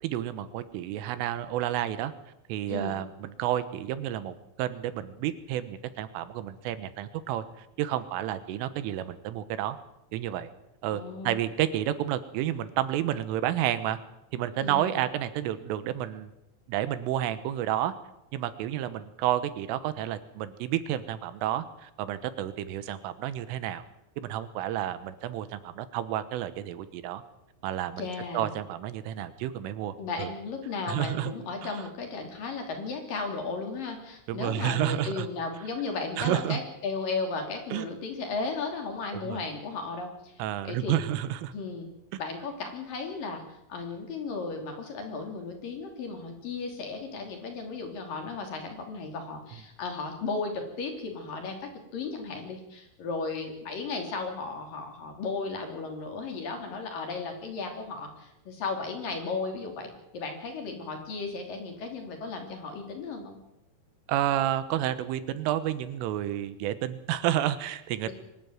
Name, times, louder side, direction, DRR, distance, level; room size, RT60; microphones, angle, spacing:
voice 1, 0.0-2.1 2.5-9.8 10.1-10.5 10.8-14.0 14.3-16.3 16.7-17.9 18.3-23.8 24.2-27.2 27.6-28.1 28.3-30.3 30.9-31.3 31.6-31.7 34.3-35.3 36.2-36.6 37.7-37.9 39.1-39.4 40.4-41.5 42.1-42.2 64.1-68.1, right 12 dB, 85° right, 13 dB, 3.7 m, -30 dB
voice 2, 10.9-11.4 14.6-15.0 28.0-28.5 30.0-40.4 40.6-41.0 41.5-41.9 42.2-63.4 68.0-68.1, left 4 dB, 50° left, 3 dB, 4.3 m, -35 dB
23.5 x 13.0 x 9.3 m, 0.87 s
omnidirectional pair, 5.7 m